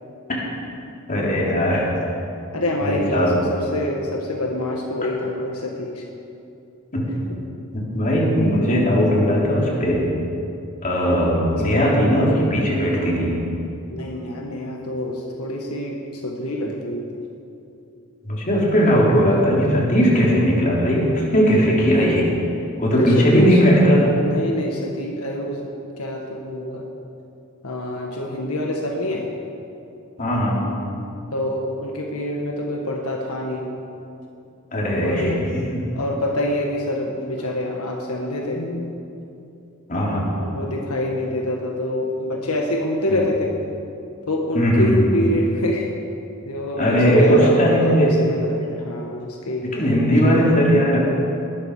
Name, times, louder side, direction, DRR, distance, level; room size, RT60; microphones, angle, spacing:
voice 1, 1.1-1.9 2.8-3.4 6.9-7.0 7.7-10.0 10.8-13.4 18.2-22.3 22.8-24.1 30.2-30.7 34.7-35.8 39.9-40.3 43.1-43.2 44.5-45.1 46.8-48.1 49.7-51.0, equal, 40° left, -4 dB, 3.8 m, -18 dB
voice 2, 2.5-6.0 11.5-11.8 13.9-16.0 16.2-17.1 22.9-23.6 24.2-25.7 26.0-26.8 27.6-29.3 31.3-33.7 35.0-35.4 35.9-38.9 40.4-43.5 44.3-45.9 46.4-49.7, left 1 dB, 85° left, 0 dB, 1.6 m, -26 dB
19.5 x 13.0 x 5.0 m, 2.7 s
head